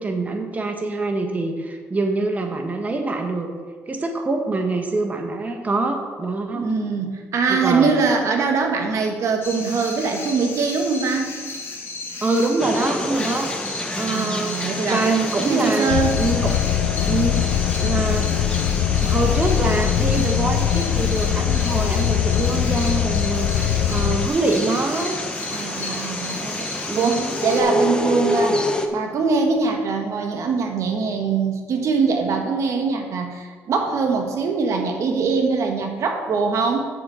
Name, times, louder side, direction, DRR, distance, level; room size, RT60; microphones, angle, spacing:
voice 1, 0.0-3.5 3.9-6.6 7.5-7.9 12.2-13.5 14.0-16.6 17.0-18.4 19.0-25.2 26.8-27.4, right 2 dB, 25° right, 3 dB, 1.4 m, -25 dB
voice 2, 6.5-11.3 14.0-15.0 15.4-16.2 25.5-28.6 28.9-36.9, right 4 dB, 60° right, 3 dB, 1.4 m, -22 dB
sound 1, 9.4-27.6, left 3 dB, 45° left, 2.0 m, -34 dB
sound 2, 12.6-28.9, left 1 dB, 15° left, 1.2 m, -29 dB
sound 3, 15.9-24.3, left 10 dB, 85° left, 0.5 m, -21 dB
7.0 x 6.2 x 7.6 m, 1.5 s
supercardioid pair, 80°, 6 cm